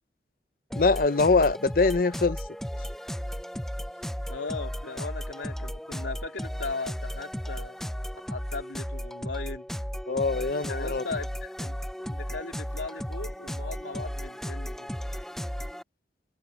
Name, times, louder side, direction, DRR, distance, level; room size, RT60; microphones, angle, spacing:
voice 1, 0.7-2.4 10.1-11.0, left 3 dB, 50° left, 0.6 m, -23 dB
sound 1, 0.7-15.8, equal, ahead, 0.4 m, -35 dB
voice 2, 4.3-7.8 8.3-9.7 10.6-11.8 12.0-14.9, left 3 dB, 85° left, 2.9 m, -38 dB
head